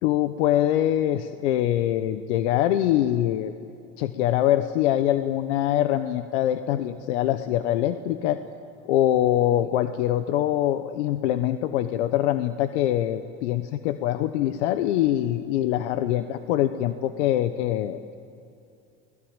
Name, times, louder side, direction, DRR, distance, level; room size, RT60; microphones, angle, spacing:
voice 1, 0.0-3.5 4.0-8.4 8.9-18.1, left 12 dB, 90° left, 10 dB, 1.0 m, -24 dB
28.5 x 19.5 x 8.9 m, 2.6 s
supercardioid pair, 110°, 34 cm